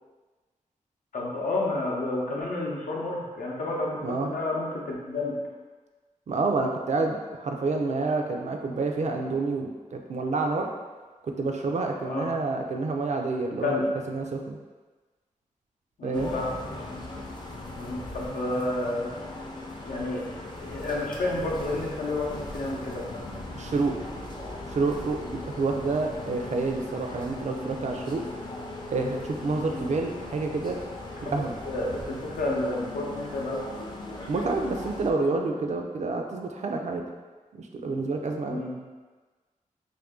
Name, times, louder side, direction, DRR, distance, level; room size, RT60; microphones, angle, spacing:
voice 1, 1.1-5.4 12.0-12.3 13.6-13.9 16.0-16.5 17.8-19.2 19.8-23.2 29.7-29.9 31.7-33.6 38.5-38.7, left 2 dB, 85° left, -3 dB, 0.7 m, -30 dB
voice 2, 6.3-10.7 11.4-14.6 16.0-16.4 23.5-24.0 24.7-28.2 28.9-30.8 31.2-31.6 34.3-37.0 37.5-38.6, right 3 dB, 55° right, 3 dB, 0.4 m, -28 dB
sound 1, 16.1-35.1, left 2 dB, 35° left, 0.5 m, -39 dB
2.6 x 2.5 x 3.6 m, 1.3 s
wide cardioid pair, 90°, 14 cm